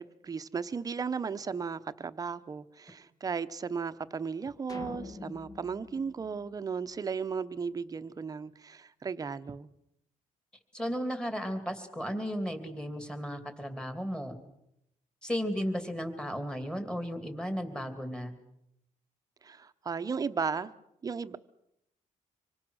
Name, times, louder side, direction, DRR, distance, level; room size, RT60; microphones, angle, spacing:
voice 1, 0.0-9.7 19.4-20.7 21.0-21.4, right 5 dB, 30° right, 12 dB, 0.9 m, -35 dB
sound 1, 4.7-7.1, left 3 dB, 30° left, 1.3 m, -46 dB
voice 2, 10.7-14.4 15.2-18.3, equal, 5° left, 7 dB, 2.8 m, -34 dB
26.0 x 24.5 x 6.4 m, 0.79 s
cardioid pair, 145°, 13 cm